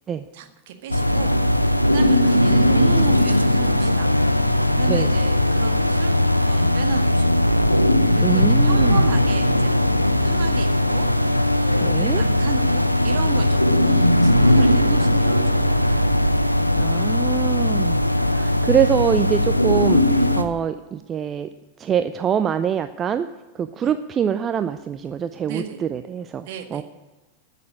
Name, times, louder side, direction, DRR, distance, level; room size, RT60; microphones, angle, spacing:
voice 1, 0.3-4.1 4.8-16.1 23.8-23.9 25.4-25.8 26.5-26.8, right 7 dB, 50° right, 5 dB, 1.7 m, -34 dB
sound 1, 0.9-20.4, left 1 dB, 85° left, 0.7 m, -19 dB
sound 2, 1.1-19.5, equal, 90° right, 0.6 m, -25 dB
voice 2, 8.2-9.0 11.8-12.2 16.8-21.5 21.8-23.3 23.6-26.8, right 8 dB, 25° right, 10 dB, 0.5 m, -24 dB
13.5 x 6.8 x 8.7 m, 1.1 s
figure-of-eight pair, 90°, 0 cm